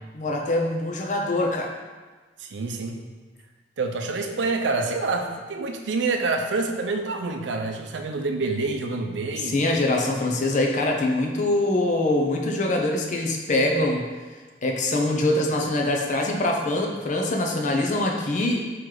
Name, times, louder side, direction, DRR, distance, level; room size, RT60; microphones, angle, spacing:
voice 1, 0.1-1.7 9.4-14.0 14.6-18.6, left 2 dB, 45° left, 1 dB, 0.6 m, -23 dB
voice 2, 2.4-3.0 3.8-9.6, right 3 dB, 90° right, 4 dB, 0.5 m, -27 dB
4.6 x 3.0 x 3.8 m, 1.4 s
head